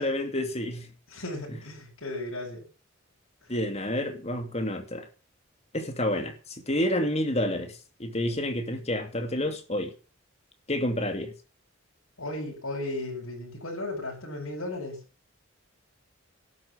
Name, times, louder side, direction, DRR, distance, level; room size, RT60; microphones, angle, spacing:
voice 1, 0.0-0.9 3.5-5.1 5.7-9.9 10.7-11.3, left 1 dB, 30° left, 2.6 m, -29 dB
voice 2, 1.1-2.6 12.2-15.0, left 2 dB, 75° left, 7.0 m, -35 dB
12.0 x 11.0 x 7.4 m
head